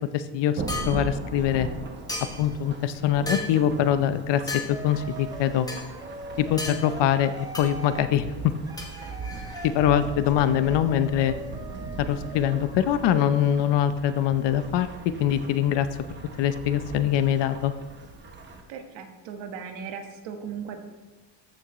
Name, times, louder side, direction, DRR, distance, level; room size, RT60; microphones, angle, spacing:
voice 1, 0.1-1.7 2.4-4.4 4.8-5.7 6.4-8.5 9.6-11.3 12.0-14.9 15.2-15.9 16.4-17.7, left 10 dB, 70° left, 12 dB, 0.7 m, -23 dB
Thunderstorm / Rain, 0.6-18.6, right 3 dB, 25° right, 0.9 m, -39 dB
sound 1, 0.7-1.0 2.1-2.5 3.3-3.6 4.5-4.7 5.7-5.8 6.6-6.8 7.5-7.7 8.8-9.7, left 2 dB, 10° left, 1.0 m, -33 dB
sound 2, 4.7-8.1 8.7-13.8, right 1 dB, 10° right, 0.5 m, -41 dB
voice 2, 18.7-20.8, right 7 dB, 90° right, 5 dB, 1.3 m, -37 dB
14.0 x 6.2 x 3.1 m, 1.2 s
cardioid pair, 165°, 44 cm